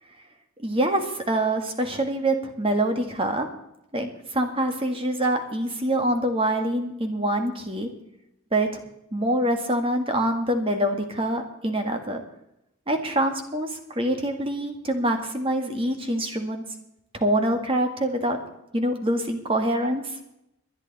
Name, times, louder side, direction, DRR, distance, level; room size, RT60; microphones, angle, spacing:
voice 1, 0.6-3.5 3.9-7.9 8.5-8.8 9.1-12.2 12.9-16.6 17.1-18.4 18.7-20.2, right 1 dB, 25° right, 5 dB, 1.8 m, -25 dB
20.0 x 11.5 x 4.1 m, 0.83 s
head